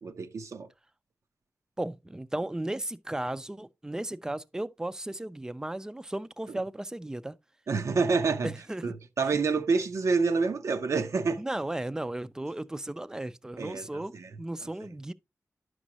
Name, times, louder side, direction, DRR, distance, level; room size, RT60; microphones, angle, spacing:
voice 1, 0.0-0.7 6.5-6.6 7.7-8.5 8.8-11.4 13.6-14.3 14.8-14.9, right 4 dB, 65° right, 0.6 m, -28 dB
voice 2, 1.8-7.3 8.4-8.9 11.4-15.1, right 1 dB, 10° right, 0.4 m, -35 dB
10.5 x 6.2 x 2.7 m
wide cardioid pair, 145°, 6 cm